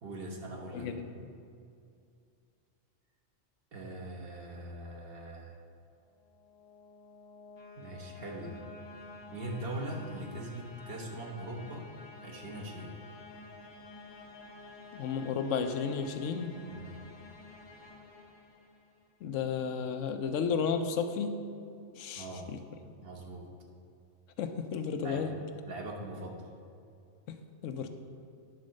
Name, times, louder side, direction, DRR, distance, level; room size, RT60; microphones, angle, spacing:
voice 1, 0.0-1.0 3.7-5.6 7.8-8.6 9.3-11.9 12.2-13.0 16.7-17.0 22.2-22.5 23.0-23.5 25.0-25.3 25.6-26.5, right 1 dB, 50° right, 0 dB, 1.3 m, -41 dB
voice 2, 0.7-1.3 14.9-16.5 19.2-21.4 22.0-22.6 24.4-25.3 27.3-27.4 27.6-27.9, left 6 dB, 80° left, 8 dB, 1.0 m, -33 dB
sound 1, 6.1-19.1, left 3 dB, 30° left, 0.6 m, -51 dB
9.7 x 4.2 x 6.3 m, 2.4 s
omnidirectional pair, 1.3 m